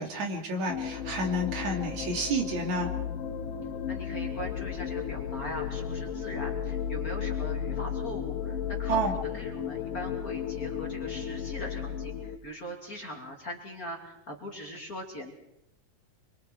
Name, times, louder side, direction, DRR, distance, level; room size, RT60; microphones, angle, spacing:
voice 1, 0.0-2.9 8.9-9.1, right 1 dB, 60° right, 2 dB, 3.8 m, -30 dB
sound 1, 0.7-12.4, left 8 dB, 90° left, 2.9 m, -34 dB
voice 2, 3.9-15.3, equal, 30° left, 0 dB, 2.8 m, -41 dB
26.5 x 24.5 x 4.6 m, 0.81 s
omnidirectional pair, 3.7 m